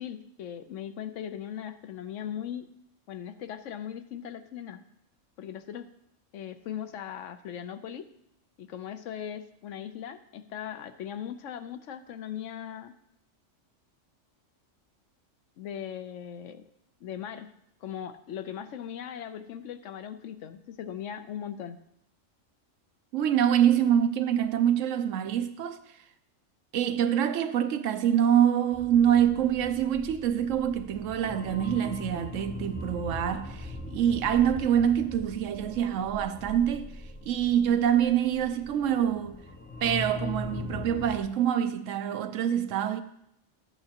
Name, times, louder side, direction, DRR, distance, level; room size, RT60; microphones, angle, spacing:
voice 1, 0.0-2.7 3.1-4.8 5.4-5.9 6.3-8.1 8.6-12.9 15.6-16.7 17.0-17.5 17.8-21.8, left 9 dB, 75° left, 1.0 m, -39 dB
voice 2, 23.1-25.8 26.7-36.9 37.2-39.4 39.8-43.0, right 9 dB, 80° right, 1.0 m, -25 dB
sound 1, 28.7-41.2, left 2 dB, 15° left, 0.3 m, -41 dB
13.5 x 8.8 x 2.9 m
omnidirectional pair, 1.3 m